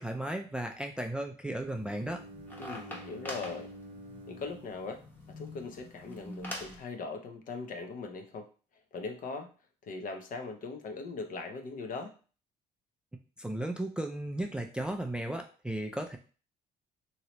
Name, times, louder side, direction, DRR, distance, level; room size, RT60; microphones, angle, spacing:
voice 1, 0.0-2.2 13.4-16.2, right 1 dB, 5° right, 3 dB, 0.3 m, -35 dB
Bowed string instrument, 1.5-5.6, right 1 dB, 60° right, 0.5 m, -50 dB
sound 1, 1.7-6.8, equal, 10° left, 0.9 m, -45 dB
voice 2, 2.6-3.7 4.3-5.0 5.4-8.5 8.9-9.5 9.8-12.1, left 4 dB, 55° left, 5 dB, 0.7 m, -40 dB
3.1 x 2.8 x 2.9 m, 0.38 s
cardioid pair, 110°, 17 cm